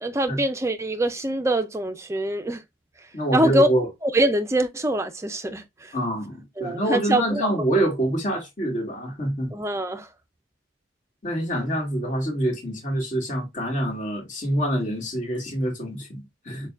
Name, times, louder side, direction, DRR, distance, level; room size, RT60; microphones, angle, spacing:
voice 1, 0.0-2.6 3.3-3.7 4.0-5.9 6.6-7.5 9.5-10.1, right 1 dB, 15° right, 0.4 m, -24 dB
voice 2, 3.1-3.9 5.9-9.5 11.2-16.7, right 1 dB, 40° left, 1.6 m, -26 dB
6.4 x 2.2 x 2.4 m
head